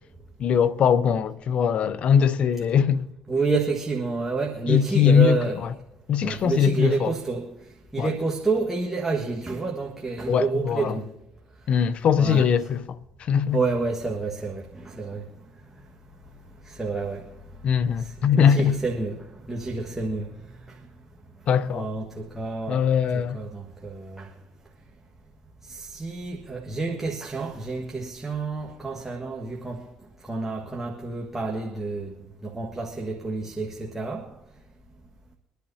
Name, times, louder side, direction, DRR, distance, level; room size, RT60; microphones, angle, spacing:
voice 1, 0.4-3.0 4.7-5.7 6.1-7.1 8.0-8.1 10.3-11.0 11.7-13.6 17.6-18.8 21.5-21.9 22.7-23.4, left 7 dB, 55° left, 0.6 m, -21 dB
voice 2, 3.3-5.6 6.2-7.5 7.9-11.1 12.2-12.5 13.5-15.2 16.7-17.2 18.0-20.3 21.7-22.9 23.1-24.3 25.7-29.9 30.3-32.2 32.4-34.3, right 3 dB, 10° right, 1.6 m, -29 dB
23.5 x 10.5 x 2.8 m
supercardioid pair, 65°, 2 cm